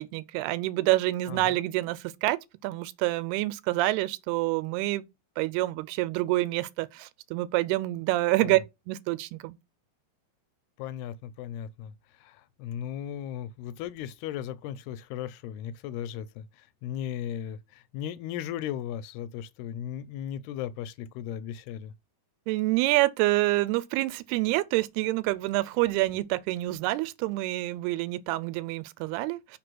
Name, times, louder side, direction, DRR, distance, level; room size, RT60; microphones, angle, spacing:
voice 1, 0.0-2.4 2.6-5.0 5.4-8.6 8.9-9.6 22.5-29.6, right 18 dB, 85° right, 2.6 m, -27 dB
voice 2, 1.3-1.7 8.4-8.6 10.8-21.9, left 10 dB, 85° left, 2.6 m, -37 dB
6.0 x 5.1 x 6.0 m
omnidirectional pair, 4.5 m